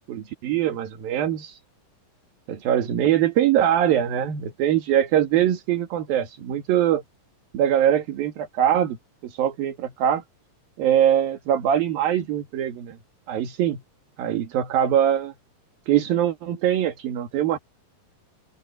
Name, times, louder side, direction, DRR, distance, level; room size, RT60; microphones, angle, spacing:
voice 1, 0.0-1.6 2.5-7.0 7.5-9.0 9.2-10.2 10.8-13.0 13.3-13.8 14.2-15.3 15.9-17.6, right 10 dB, 75° right, 3.7 m, -22 dB
open air
omnidirectional pair, 4.2 m